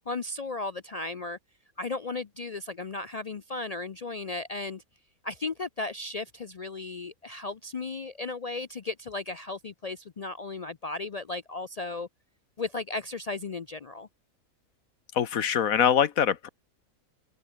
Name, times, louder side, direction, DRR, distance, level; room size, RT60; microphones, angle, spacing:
voice 1, 0.1-1.4 1.8-4.8 5.2-12.1 12.6-14.1, left 3 dB, 60° left, 0.4 m, -35 dB
voice 2, 15.1-16.5, left 8 dB, 75° left, 1.4 m, -23 dB
open air
omnidirectional pair, 1.5 m